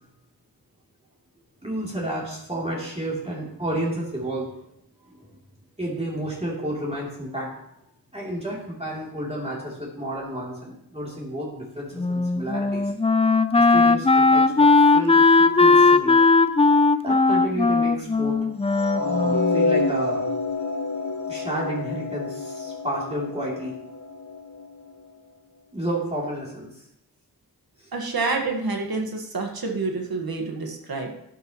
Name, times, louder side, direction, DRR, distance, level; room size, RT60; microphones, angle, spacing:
voice 1, 1.6-4.6 5.0-5.3 5.8-7.6 8.1-12.9 13.5-16.2 17.0-18.4 18.9-20.2 21.3-23.8 25.7-26.8 27.8-27.9, right 1 dB, 15° right, -5 dB, 3.1 m, -31 dB
Wind instrument woodwind instrument, 12.0-19.8, left 3 dB, 15° left, 0.5 m, -18 dB
sound 1, 18.7-24.9, left 3 dB, 50° left, 1.2 m, -28 dB
voice 2, 27.9-31.1, right 3 dB, 70° right, 2 dB, 1.7 m, -28 dB
12.0 x 9.5 x 3.1 m, 0.78 s
cardioid pair, 55°, 38 cm